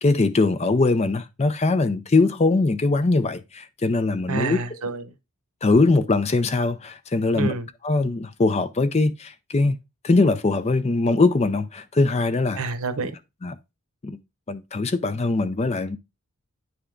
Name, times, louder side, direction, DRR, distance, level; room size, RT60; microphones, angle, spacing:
voice 1, 0.0-4.6 5.6-7.5 7.8-9.8 10.0-12.6 13.4-13.5 14.0-14.2 14.5-16.0, left 3 dB, 30° left, 0.4 m, -21 dB
voice 2, 4.3-5.1 7.3-7.7 12.6-13.1, right 4 dB, 70° right, 0.8 m, -28 dB
9.8 x 3.5 x 3.7 m
head